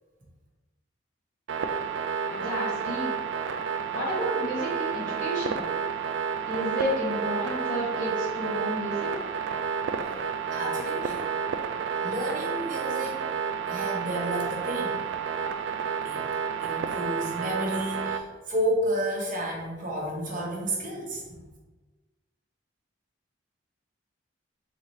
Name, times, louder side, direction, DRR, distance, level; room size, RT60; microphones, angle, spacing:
sound 1, 1.5-18.2, right 6 dB, 65° right, 0.3 m, -30 dB
voice 1, 2.3-3.1 3.9-5.6 6.5-9.2, equal, 40° left, -7 dB, 1.3 m, -31 dB
voice 2, 10.5-11.3 12.0-13.3 13.7-15.0 16.0-16.3 16.6-21.5, equal, 40° right, -2 dB, 1.0 m, -31 dB
4.1 x 3.7 x 3.1 m, 1.2 s
head